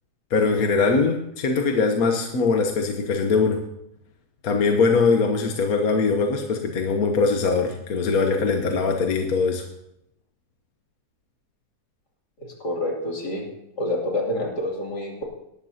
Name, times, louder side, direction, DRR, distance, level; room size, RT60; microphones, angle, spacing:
voice 1, 0.3-3.6 4.4-9.6, left 4 dB, 65° left, 3 dB, 1.4 m, -21 dB
voice 2, 12.4-13.5 13.8-15.2, left 1 dB, 80° left, -1 dB, 3.4 m, -28 dB
19.0 x 12.5 x 2.8 m, 0.81 s
omnidirectional pair, 1.7 m